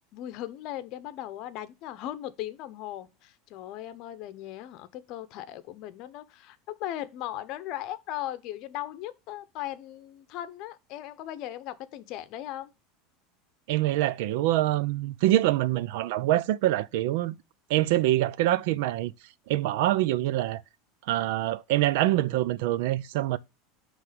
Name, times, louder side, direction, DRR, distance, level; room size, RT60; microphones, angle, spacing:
voice 1, 0.1-12.7, left 13 dB, 50° left, 0.8 m, -38 dB
voice 2, 13.7-17.4 17.7-19.1 19.5-20.6 21.1-23.4, right 15 dB, 70° right, 0.5 m, -25 dB
9.7 x 3.3 x 5.1 m
supercardioid pair, 140°, 0 cm